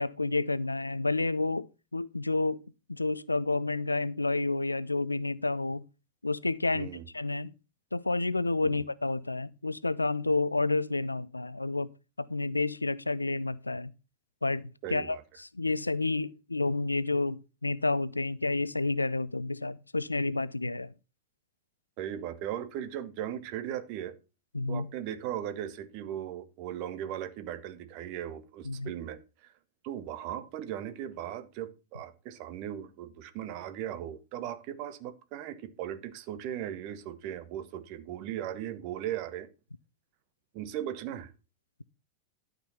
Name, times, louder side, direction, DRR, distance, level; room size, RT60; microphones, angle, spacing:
voice 1, 0.0-2.6 2.9-5.8 6.2-6.9 7.1-7.5 7.9-11.9 12.2-13.9 14.4-20.9 24.5-24.9 28.6-28.9, left 3 dB, 80° left, 0.4 m, -30 dB
voice 2, 6.7-7.1 8.6-8.8 14.8-15.2 22.0-24.2 24.7-29.5 29.8-39.5 40.5-41.3, right 11 dB, 45° right, 1.2 m, -38 dB
12.0 x 5.2 x 5.7 m
figure-of-eight pair, 90°, 0 cm